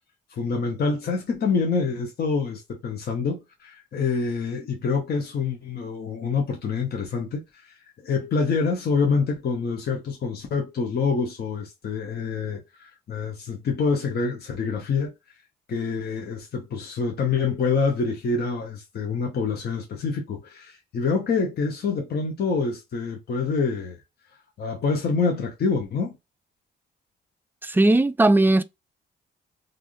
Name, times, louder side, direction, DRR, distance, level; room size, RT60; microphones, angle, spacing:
voice 1, 0.3-7.7 8.0-15.1 15.7-24.0 24.6-26.1, left 4 dB, 55° left, 1.0 m, -26 dB
voice 2, 27.6-28.6, right 2 dB, 10° right, 0.4 m, -18 dB
3.4 x 2.5 x 2.6 m
cardioid pair, 90°, 20 cm